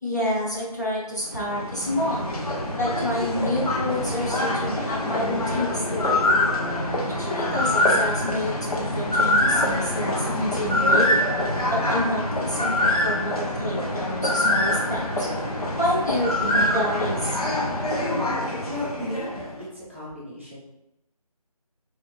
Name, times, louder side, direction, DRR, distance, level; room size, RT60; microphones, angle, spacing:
voice 1, 0.0-2.3 2.8-6.5 7.1-11.3 11.7-15.3 15.8-17.4, left 1 dB, 30° left, -7 dB, 0.7 m, -28 dB
sound 1, 1.2-19.6, left 1 dB, 70° left, 1.0 m, -25 dB
voice 2, 18.7-20.6, left 1 dB, 20° right, -9 dB, 0.7 m, -35 dB
3.5 x 3.1 x 3.1 m, 0.90 s
figure-of-eight pair, 175°, 19 cm